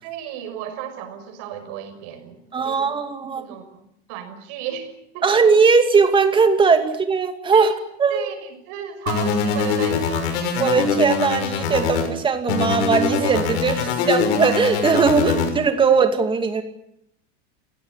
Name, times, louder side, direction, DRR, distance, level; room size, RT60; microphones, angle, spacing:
voice 1, 0.0-2.9 3.4-5.5 7.5-7.8 8.1-10.5 13.8-14.1 15.2-15.3, right 9 dB, 50° right, 8 dB, 6.2 m, -34 dB
voice 2, 2.5-3.5 5.2-7.7 8.0-8.3 10.6-16.6, right 5 dB, 15° right, 7 dB, 2.5 m, -19 dB
sound 1, 9.1-12.1 12.5-15.5, left 5 dB, 75° left, 6.1 m, -23 dB
28.5 x 18.0 x 10.0 m, 0.77 s
supercardioid pair, 160°, 33 cm